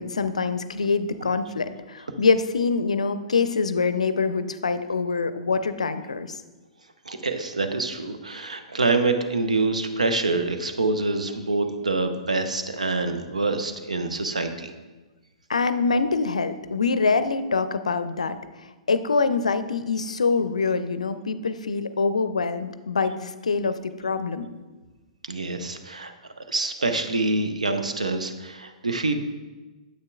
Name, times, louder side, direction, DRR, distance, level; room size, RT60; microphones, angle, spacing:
voice 1, 0.0-6.4 15.5-18.4 18.9-24.5, left 4 dB, 75° left, 12 dB, 0.5 m, -25 dB
voice 2, 7.1-14.7 25.3-26.1 26.5-29.1, right 3 dB, 80° right, 8 dB, 0.7 m, -26 dB
9.4 x 7.8 x 2.4 m, 1.2 s
figure-of-eight pair, 110°, 4 cm